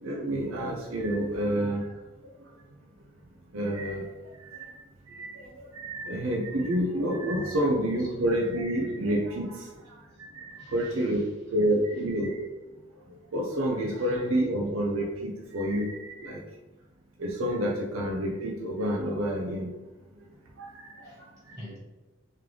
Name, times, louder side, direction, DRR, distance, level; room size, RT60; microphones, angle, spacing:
voice 1, 0.0-1.9 3.5-4.1 4.4-4.8 5.1-9.7 10.2-11.2 11.5-12.4 13.3-16.4 17.2-19.7 20.6-21.1, right 1 dB, 85° right, 0 dB, 0.6 m, -29 dB
voice 2, 7.6-8.2 10.1-10.2 10.6-12.1 14.0-14.1 21.0-21.8, equal, 30° right, -7 dB, 1.4 m, -50 dB
3.7 x 3.3 x 3.2 m, 1.1 s
head